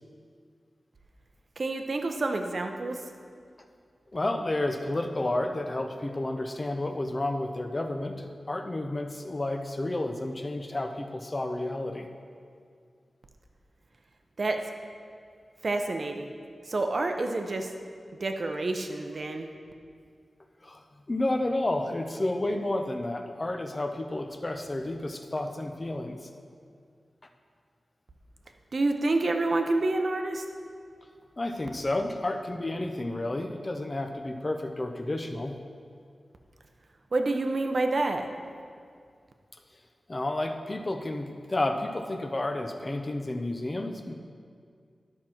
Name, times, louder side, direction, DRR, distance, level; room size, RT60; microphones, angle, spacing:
voice 1, 1.6-3.0 14.4-14.6 15.6-16.3 16.7-17.7 18.2-19.5 28.7-30.4 37.1-38.3, right 2 dB, 50° right, 5 dB, 0.8 m, -28 dB
voice 2, 4.1-12.1 20.6-26.3 31.4-35.6 40.1-44.1, left 1 dB, 30° left, 5 dB, 0.7 m, -31 dB
11.5 x 6.2 x 4.4 m, 2.2 s
wide cardioid pair, 110°, 0 cm